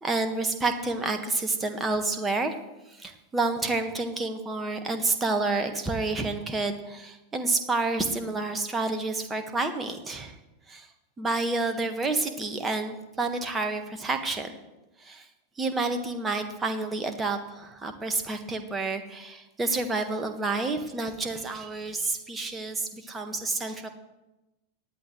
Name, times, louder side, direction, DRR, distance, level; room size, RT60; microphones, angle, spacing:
voice 1, 0.0-2.5 2.9-10.3 10.7-10.9 11.2-14.6 15.0-15.3 15.6-23.9, right 3 dB, 15° right, 6 dB, 1.5 m, -29 dB
18.5 x 11.5 x 3.2 m, 1.0 s
figure-of-eight pair, 90°, 0 cm